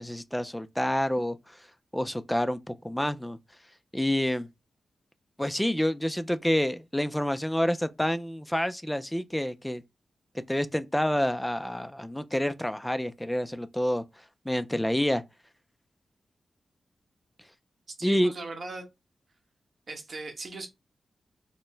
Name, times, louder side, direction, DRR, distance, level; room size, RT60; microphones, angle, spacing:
voice 1, 0.0-1.6 1.9-3.4 3.9-4.5 5.4-9.8 10.5-14.0 14.5-15.2 18.0-18.3, equal, 5° left, 0.3 m, -28 dB
voice 2, 18.0-18.8 19.9-20.7, right 3 dB, 50° right, 0.9 m, -38 dB
4.2 x 2.0 x 3.2 m
wide cardioid pair, 135°, 0 cm